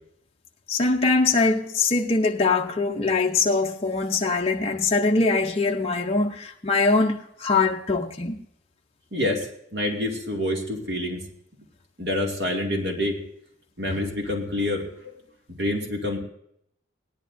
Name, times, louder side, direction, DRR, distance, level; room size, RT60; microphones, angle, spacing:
voice 1, 0.7-8.4 13.9-14.0, left 3 dB, 30° left, 0.6 m, -22 dB
voice 2, 9.1-11.3 12.0-13.2 13.8-15.1 15.6-16.2, left 1 dB, 55° right, 2.4 m, -27 dB
18.0 x 11.5 x 2.7 m
head